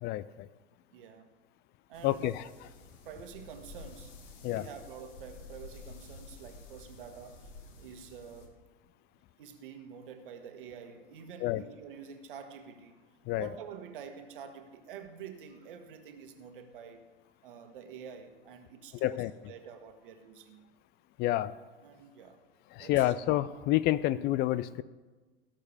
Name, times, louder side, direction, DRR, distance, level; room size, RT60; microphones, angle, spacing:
voice 1, 0.0-0.5 2.0-2.4 4.4-4.6 11.4-11.6 13.3-13.5 19.0-19.3 21.2-21.5 22.7-24.8, left 15 dB, 35° left, 0.5 m, -29 dB
voice 2, 0.9-1.3 1.9-2.5 3.0-7.5 7.8-8.6 9.1-13.0 13.4-17.0 17.4-20.7 21.8-22.4 22.7-23.1, right 7 dB, 65° right, 1.7 m, -48 dB
sound 1, 1.9-8.5, left 3 dB, 50° left, 2.3 m, -51 dB
16.5 x 6.6 x 6.9 m
figure-of-eight pair, 80°, 29 cm